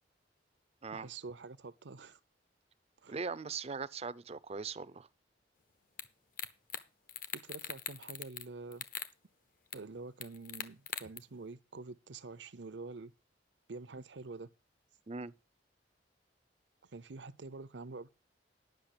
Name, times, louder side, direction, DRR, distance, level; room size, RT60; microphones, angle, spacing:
voice 1, 0.9-2.2 3.0-3.2 7.3-8.9 9.7-13.1 13.7-14.5 16.9-18.1, right 3 dB, 70° right, 0.8 m, -47 dB
voice 2, 3.1-5.1 15.1-15.3, right 5 dB, 35° right, 0.5 m, -40 dB
sound 1, 6.0-6.1 6.4-6.8 7.1-8.5 8.7-9.1 9.7-9.8 10.2-11.2, left 8 dB, 50° left, 1.0 m, -40 dB
10.5 x 6.2 x 6.6 m
head